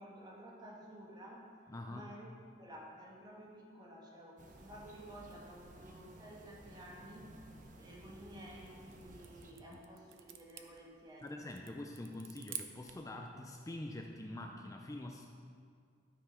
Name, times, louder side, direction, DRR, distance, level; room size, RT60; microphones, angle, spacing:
voice 1, 0.0-1.5 1.9-7.4 7.8-11.4, equal, 20° right, -2 dB, 1.5 m, -52 dB
voice 2, 1.7-2.1 9.7-9.8 11.2-15.3, left 1 dB, 15° left, 2 dB, 0.5 m, -45 dB
sound 1, 4.4-9.5, right 1 dB, 40° right, 0.8 m, -56 dB
sound 2, 8.6-13.1, right 10 dB, 80° right, 0.6 m, -50 dB
12.5 x 5.9 x 4.3 m, 2.2 s
head